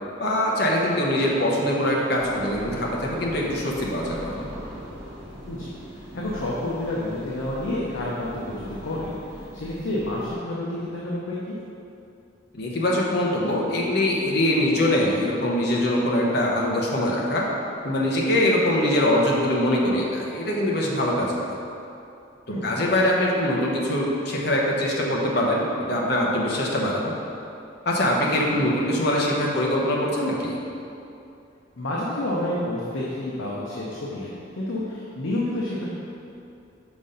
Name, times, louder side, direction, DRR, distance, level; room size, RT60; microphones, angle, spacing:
voice 1, 0.2-4.5 12.5-17.4 17.8-21.5 22.6-27.1 27.8-30.6, left 1 dB, 55° left, -3 dB, 0.9 m, -23 dB
sound 1, 2.2-10.3, equal, 65° right, 1.4 m, -40 dB
voice 2, 5.4-11.5 22.5-22.7 28.4-28.6 31.8-34.3 34.5-35.9, left 1 dB, 85° left, -6 dB, 0.8 m, -29 dB
6.1 x 3.7 x 5.5 m, 2.7 s
head